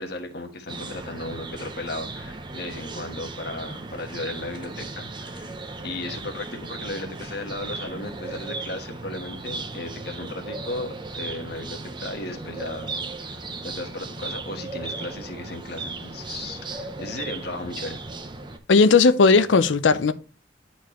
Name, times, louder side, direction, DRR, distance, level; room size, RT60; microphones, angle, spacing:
voice 1, 0.0-5.6 5.8-18.0, left 2 dB, 60° left, 1.3 m, -35 dB
sound 1, 0.7-18.6, right 3 dB, 25° right, 0.7 m, -36 dB
voice 2, 18.7-20.1, left 4 dB, 80° left, 0.6 m, -16 dB
10.0 x 4.4 x 3.0 m
head